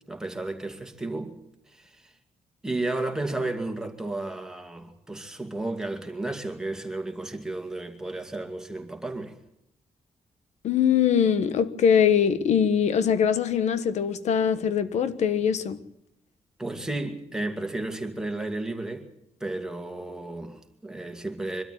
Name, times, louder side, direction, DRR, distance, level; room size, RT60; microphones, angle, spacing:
voice 1, 0.1-1.4 1.7-2.1 2.6-9.3 16.6-19.1 19.4-21.6, right 2 dB, 5° right, 2.4 m, -33 dB
voice 2, 10.6-15.8, left 8 dB, 90° left, 1.3 m, -22 dB
24.0 x 13.0 x 9.2 m
wide cardioid pair, 170°, 11 cm